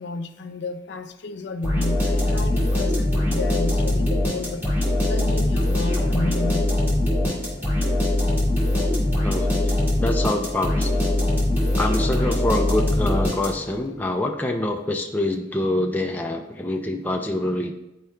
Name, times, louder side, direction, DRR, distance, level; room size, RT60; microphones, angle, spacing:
voice 1, 0.0-4.6 5.1-6.7 11.8-12.0, left 2 dB, 60° left, 8 dB, 0.5 m, -32 dB
sound 1, 1.6-13.8, left 1 dB, 10° right, 1.9 m, -22 dB
voice 2, 9.2-11.0 11.8-17.7, left 1 dB, 10° left, 2 dB, 0.4 m, -26 dB
10.5 x 4.6 x 2.2 m, 0.96 s
head